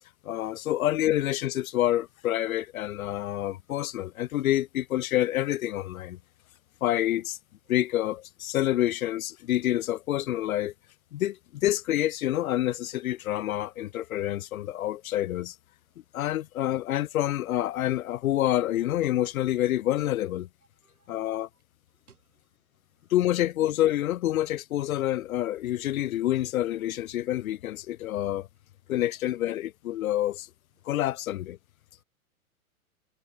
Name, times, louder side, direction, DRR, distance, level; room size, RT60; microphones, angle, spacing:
voice 1, 0.2-6.2 6.8-7.4 7.7-10.7 11.1-15.6 16.1-20.5 21.1-21.5 23.1-28.5 28.9-30.5 30.9-31.6, left 13 dB, 75° left, 0.6 m, -27 dB
voice 2, 20.8-21.2 21.5-21.6 21.9-22.5 23.0-23.1 26.0-26.1 32.0-32.1, right 6 dB, 90° right, 1.4 m, -64 dB
hypercardioid pair, 105°, 43 cm